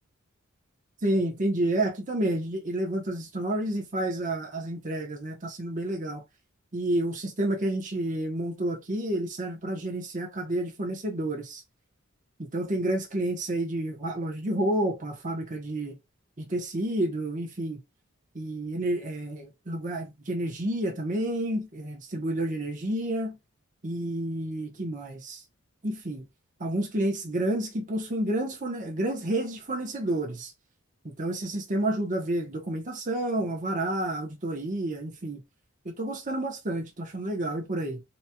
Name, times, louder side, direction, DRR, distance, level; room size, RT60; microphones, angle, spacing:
voice 1, 1.0-6.2 6.7-11.6 12.4-16.0 16.4-17.8 18.3-23.4 23.8-25.4 25.8-26.3 26.6-30.5 31.2-35.4 35.8-38.0, right 1 dB, 35° right, 1.0 m, -30 dB
4.0 x 2.9 x 2.2 m
head